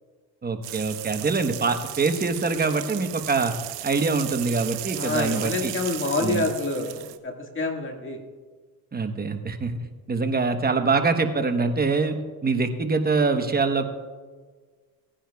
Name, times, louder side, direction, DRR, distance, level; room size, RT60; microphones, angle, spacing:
voice 1, 0.4-3.5 3.8-5.7 6.2-6.5 8.9-9.8 10.1-13.9, right 4 dB, 20° right, 6 dB, 1.1 m, -24 dB
sound 1, 0.6-7.2, right 15 dB, 80° right, 0.8 m, -36 dB
voice 2, 5.0-7.0 7.2-8.2, left 2 dB, 30° left, 3 dB, 1.9 m, -27 dB
17.0 x 10.0 x 2.3 m, 1.5 s
supercardioid pair, 90°, 42 cm